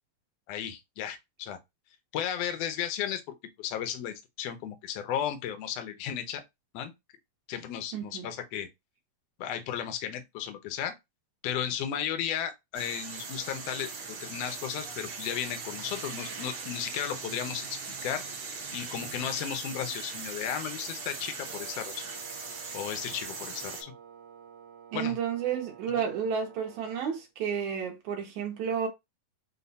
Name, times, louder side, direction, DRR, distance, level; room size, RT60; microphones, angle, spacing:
voice 1, 0.5-1.6 2.1-3.2 3.6-6.4 6.7-6.9 7.5-8.7 9.4-11.0 11.4-13.9 14.2-18.2 18.7-22.1 22.7-23.9 24.9-25.2 26.0-26.1, left 9 dB, 80° left, 1.4 m, -34 dB
voice 2, 7.9-8.3 24.9-28.9, right 7 dB, 70° right, 1.9 m, -31 dB
sound 1, 12.7-23.8, right 4 dB, 55° right, 1.3 m, -40 dB
Wind instrument woodwind instrument, 21.5-27.3, right 7 dB, 90° right, 2.3 m, -51 dB
5.3 x 2.2 x 4.0 m
omnidirectional pair, 3.8 m